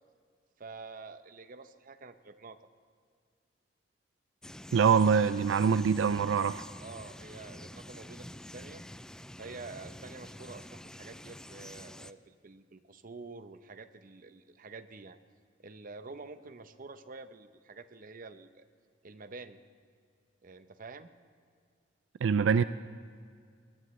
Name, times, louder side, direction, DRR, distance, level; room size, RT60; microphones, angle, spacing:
voice 1, 0.6-2.6 6.8-8.8 9.4-15.2 15.6-18.6 19.0-19.6 20.4-21.1, right 3 dB, 50° right, 10 dB, 0.8 m, -48 dB
sound 1, 4.4-12.1, left 1 dB, 5° left, 0.3 m, -47 dB
voice 2, 4.7-6.7 22.2-22.6, right 6 dB, 85° right, 13 dB, 0.4 m, -24 dB
22.5 x 19.0 x 3.2 m, 2.2 s
head